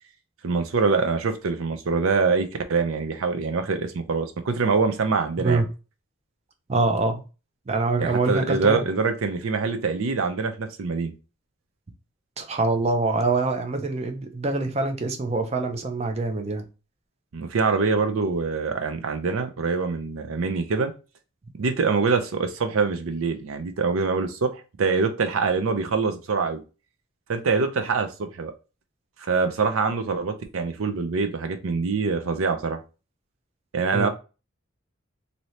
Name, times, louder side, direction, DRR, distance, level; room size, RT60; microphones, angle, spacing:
voice 1, 0.4-5.6 8.0-11.1 17.3-20.9 21.6-26.6 27.3-28.5 29.2-32.8 33.7-34.1, right 4 dB, 75° right, 0.5 m, -24 dB
voice 2, 6.7-7.2 7.7-8.8 12.4-16.6 33.9-34.1, right 3 dB, 30° right, 0.5 m, -25 dB
2.8 x 2.7 x 3.1 m
head